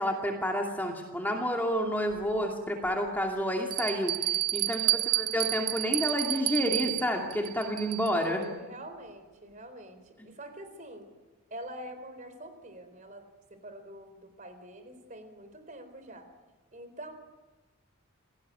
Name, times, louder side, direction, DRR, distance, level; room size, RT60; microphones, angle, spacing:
voice 1, 0.0-8.4, equal, 10° left, 1 dB, 2.5 m, -30 dB
Bell, 2.1-2.2 2.9-3.0 3.7-8.3, right 17 dB, 80° right, 0.8 m, -30 dB
voice 2, 4.6-5.2 8.2-11.1 11.5-13.2 13.5-16.3 16.7-17.1, right 1 dB, 35° right, 9 dB, 4.1 m, -45 dB
28.5 x 18.5 x 9.5 m, 1.2 s
head